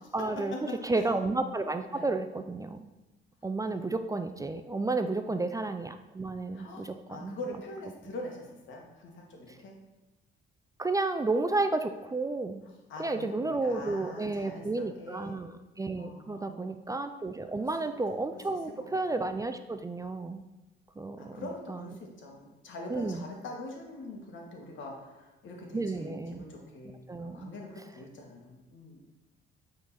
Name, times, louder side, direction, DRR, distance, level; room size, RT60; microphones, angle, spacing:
voice 1, 0.1-0.5 0.8-2.8 3.4-7.4 10.8-12.6 13.0-20.4 21.0-21.8 22.9-23.2 25.7-26.4 27.1-27.5, right 3 dB, 15° right, 8 dB, 0.4 m, -32 dB
voice 2, 5.0-5.3 6.5-9.7 12.9-15.4 16.0-16.7 17.6-17.7 18.3-18.4 18.8-18.9 21.2-29.0, left 2 dB, 75° left, 0 dB, 1.7 m, -44 dB
8.4 x 3.9 x 4.2 m, 1.1 s
cardioid pair, 90°, 20 cm